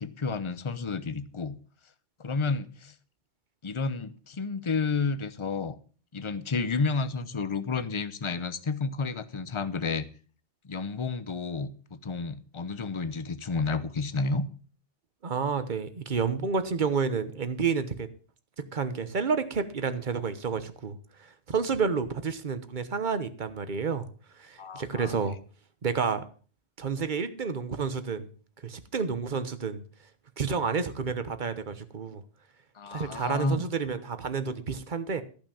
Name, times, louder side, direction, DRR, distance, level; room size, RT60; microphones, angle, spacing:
voice 1, 0.0-1.6 2.2-2.9 3.6-5.8 6.1-10.1 10.7-14.5 24.6-25.1 32.7-33.6, left 4 dB, 30° left, 14 dB, 0.7 m, -31 dB
voice 2, 15.2-18.1 18.6-24.1 24.4-25.4 25.8-26.2 26.8-28.3 28.6-29.8 30.4-32.2 32.9-35.2, right 5 dB, 45° right, 11 dB, 1.2 m, -30 dB
14.0 x 6.0 x 7.0 m, 0.40 s
omnidirectional pair, 1.2 m